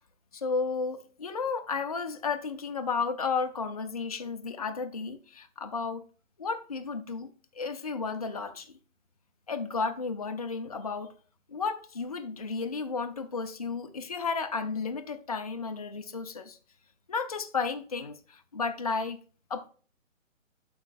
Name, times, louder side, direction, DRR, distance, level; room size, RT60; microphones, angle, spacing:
voice 1, 0.3-6.0 6.4-7.3 7.5-8.8 9.5-11.1 11.5-16.6 17.1-19.2 19.5-19.7, left 4 dB, 30° left, 0.4 m, -33 dB
11.5 x 4.4 x 2.4 m
hypercardioid pair, 155°, 40 cm